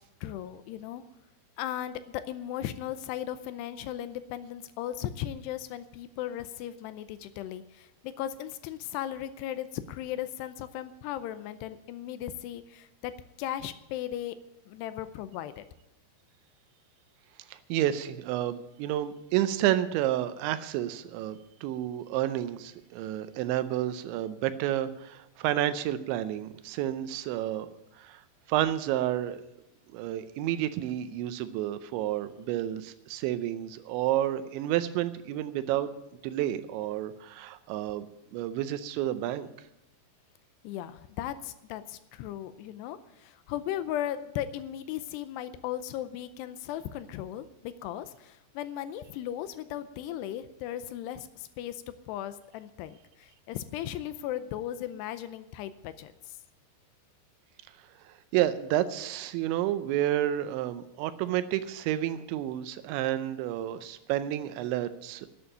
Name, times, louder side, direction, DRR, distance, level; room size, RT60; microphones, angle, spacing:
voice 1, 0.2-1.0 1.6-13.1 13.4-14.4 14.7-15.6 40.6-56.4, left 11 dB, 80° left, 12 dB, 2.5 m, -37 dB
voice 2, 17.5-27.7 27.9-28.2 28.5-29.4 29.9-35.9 36.2-38.1 38.3-39.5 58.0-65.3, right 12 dB, 85° right, 12 dB, 3.0 m, -30 dB
11.0 x 8.6 x 9.0 m, 0.89 s
omnidirectional pair, 5.2 m